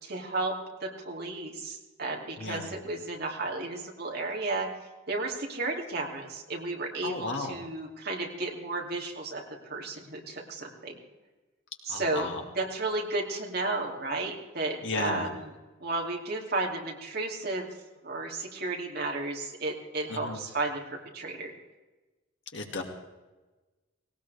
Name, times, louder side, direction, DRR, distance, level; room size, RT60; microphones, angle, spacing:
voice 1, 0.0-4.7 5.1-11.0 11.8-12.3 12.5-15.5 15.8-17.7 18.0-21.5, right 2 dB, 55° right, 1 dB, 3.0 m, -33 dB
voice 2, 7.0-7.6 11.9-12.4 14.8-15.3 20.1-20.4 22.5-22.8, left 3 dB, 65° left, 2 dB, 2.4 m, -34 dB
19.5 x 18.5 x 3.5 m, 1.2 s
head